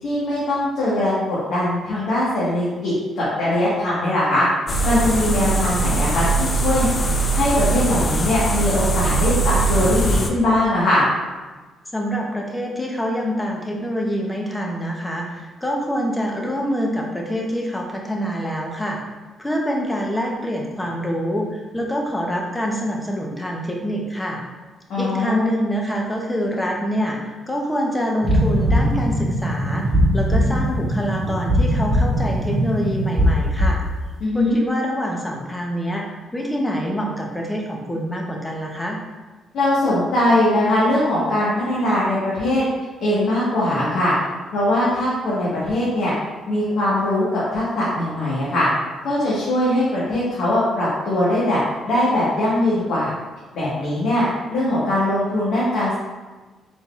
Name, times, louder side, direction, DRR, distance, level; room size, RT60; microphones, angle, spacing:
voice 1, 0.0-4.4 4.8-6.9 7.3-11.1 24.9-25.4 34.2-34.6 39.5-42.6 43.0-44.1 44.5-46.1 46.5-48.7 49.0-51.6 51.8-53.1 53.5-56.0, left 1 dB, 75° left, -9 dB, 1.3 m, -21 dB
sound 1, 4.7-10.3, right 3 dB, 40° left, 0.5 m, -21 dB
voice 2, 11.9-19.0 19.4-24.4 25.0-29.8 30.1-33.8 34.3-39.0, equal, 10° left, 0 dB, 0.8 m, -25 dB
sound 2, 28.2-33.9, equal, 20° right, 1.4 m, -20 dB
4.2 x 3.8 x 2.4 m, 1.2 s
cardioid pair, 90°, 0 cm